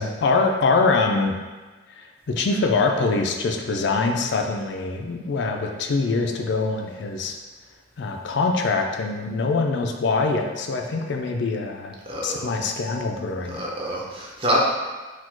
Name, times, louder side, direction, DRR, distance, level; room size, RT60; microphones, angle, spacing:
voice 1, 0.0-1.4 1.9-7.4 8.0-11.9 12.2-13.6, left 3 dB, 65° left, 2 dB, 0.4 m, -24 dB
voice 2, 12.1-12.5 13.5-14.6, equal, 30° right, -4 dB, 0.7 m, -26 dB
4.2 x 2.3 x 4.4 m, 1.3 s
head